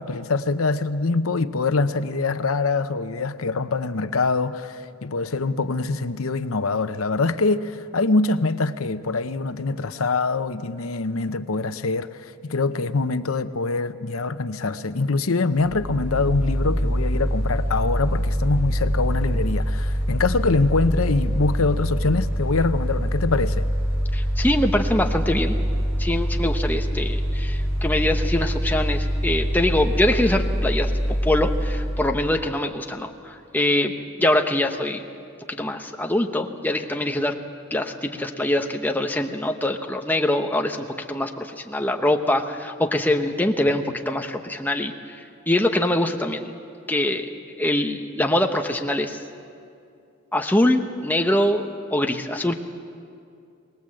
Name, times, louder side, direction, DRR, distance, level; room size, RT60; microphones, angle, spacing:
voice 1, 0.0-23.7, left 3 dB, 90° left, 0.8 m, -24 dB
Mechanical fan, 15.5-32.4, equal, 10° right, 6.2 m, -24 dB
voice 2, 24.1-25.6 26.0-30.9 31.2-33.9 34.2-35.1 35.5-37.4 37.7-46.5 46.9-47.3 47.6-49.2 50.3-52.5, left 1 dB, 10° left, 1.0 m, -23 dB
22.5 x 20.0 x 7.7 m
head